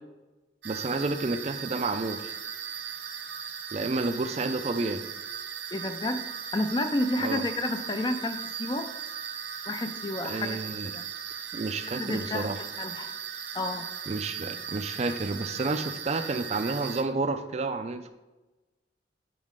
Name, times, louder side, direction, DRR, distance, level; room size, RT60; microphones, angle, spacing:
voice 1, 0.6-2.3 3.7-5.0 7.2-7.4 10.2-10.9 11.5-12.6 14.1-18.1, right 3 dB, 35° right, 8 dB, 0.4 m, -30 dB
sound 1, 0.6-17.0, right 8 dB, 75° right, 1.0 m, -38 dB
voice 2, 5.7-6.3 6.5-8.9 9.7-11.0 11.9-13.1 13.5-13.9, left 1 dB, 25° left, 7 dB, 0.4 m, -31 dB
9.3 x 4.1 x 3.7 m, 1.1 s
head